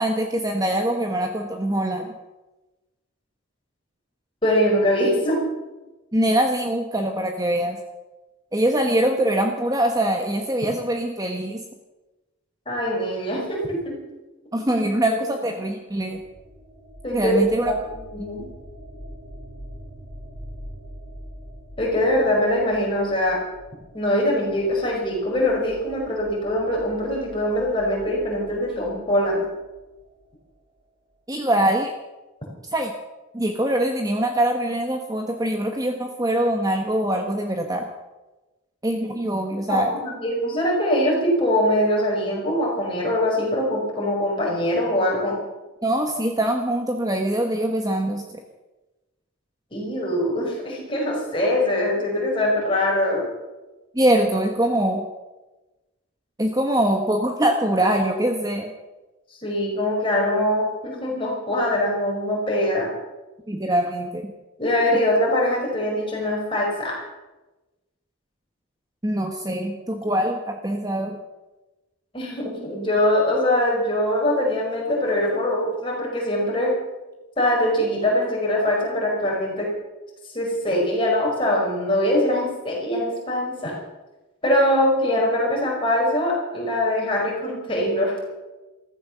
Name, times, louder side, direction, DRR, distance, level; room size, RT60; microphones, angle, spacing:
voice 1, 0.0-2.1 6.1-7.8 8.5-11.6 14.5-16.2 17.1-17.7 31.3-31.9 32.7-32.9 33.3-37.9 38.8-39.9 45.8-48.2 53.9-55.1 56.4-58.7 63.5-64.3 69.0-71.2, right 1 dB, 15° right, 3 dB, 1.1 m, -23 dB
voice 2, 4.4-5.4 12.7-13.9 14.7-14.8 15.1-15.2 17.0-17.4 17.6-18.5 21.8-23.4 23.9-29.4 39.7-45.4 49.7-53.3 59.4-62.9 64.6-67.0 72.1-76.7 77.4-79.7 80.3-83.8 84.4-88.2, left 1 dB, 25° left, -3 dB, 5.4 m, -23 dB
sound 1, 15.9-30.5, equal, 35° right, 7.5 m, -43 dB
14.5 x 14.5 x 6.8 m, 1.1 s
head